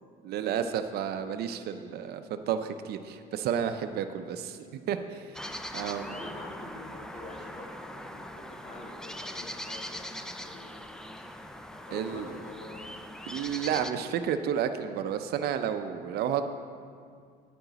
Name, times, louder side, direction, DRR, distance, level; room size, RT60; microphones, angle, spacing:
voice 1, 0.2-5.2 5.7-6.2 11.9-12.3 13.3-16.5, right 8 dB, 70° right, 8 dB, 0.6 m, -31 dB
sound 1, 5.3-13.9, equal, 5° left, 0.4 m, -41 dB
voice 2, 5.9-10.8 11.2-11.4 11.9-12.8, left 1 dB, 40° left, -3 dB, 2.2 m, -45 dB
10.0 x 8.8 x 4.0 m, 2.1 s
cardioid pair, 110°, 17 cm